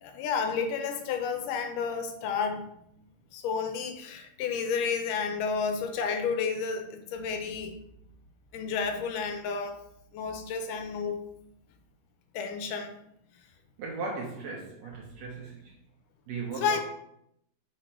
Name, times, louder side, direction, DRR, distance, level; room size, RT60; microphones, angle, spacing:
voice 1, 0.0-2.7 3.3-7.7 8.5-9.8 10.1-11.3 12.3-12.9 16.6-16.8, left 5 dB, 80° left, 6 dB, 2.2 m, -31 dB
voice 2, 13.8-15.7 16.3-16.8, right 4 dB, 70° right, -1 dB, 1.7 m, -37 dB
5.2 x 4.9 x 4.4 m, 0.76 s
omnidirectional pair, 3.9 m